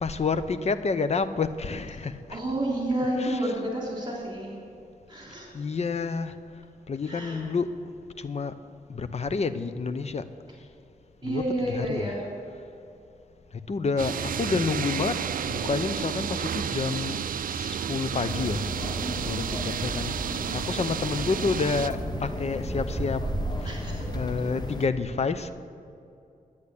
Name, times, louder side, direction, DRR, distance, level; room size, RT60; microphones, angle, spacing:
voice 1, 0.0-2.4 3.2-3.4 5.5-6.4 6.9-7.7 8.2-8.5 8.9-10.2 11.2-12.1 13.7-17.2 17.5-18.6 19.3-20.2 20.5-23.3 23.6-23.7 24.1-25.5, left 4 dB, 45° left, 11 dB, 0.7 m, -29 dB
voice 2, 2.3-4.5 5.1-5.5 7.1-7.4 11.2-12.2 19.0-19.4 23.6-24.1, right 1 dB, 30° right, -3 dB, 3.4 m, -30 dB
sound 1, 14.0-21.9, right 8 dB, 70° right, 0.4 m, -31 dB
sound 2, 18.3-24.9, left 1 dB, 30° left, 1.2 m, -35 dB
10.5 x 9.9 x 8.3 m, 2.6 s
wide cardioid pair, 95°, 15 cm